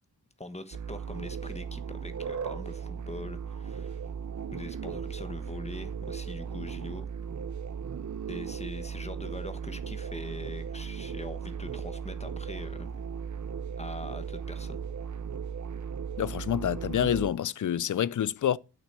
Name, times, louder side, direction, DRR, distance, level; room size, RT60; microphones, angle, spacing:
voice 1, 0.4-4.0 4.5-7.1 8.3-12.9 13.8-14.8, left 2 dB, 15° left, 1.1 m, -42 dB
sound 1, 0.7-17.3, right 6 dB, 45° right, 0.6 m, -37 dB
voice 2, 16.2-18.6, left 10 dB, 50° left, 0.5 m, -27 dB
8.6 x 6.0 x 8.1 m
wide cardioid pair, 110°, 40 cm